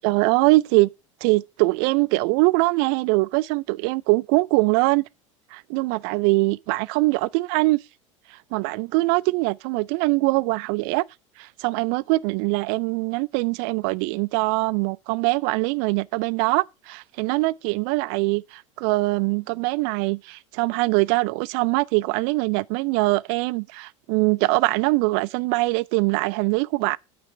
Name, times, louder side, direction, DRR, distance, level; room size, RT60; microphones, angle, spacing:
voice 1, 0.0-0.9 1.2-5.0 5.5-7.8 8.3-11.0 11.4-27.0, right 23 dB, 50° right, 0.4 m, -22 dB
9.5 x 5.7 x 4.1 m
figure-of-eight pair, 80°, 17 cm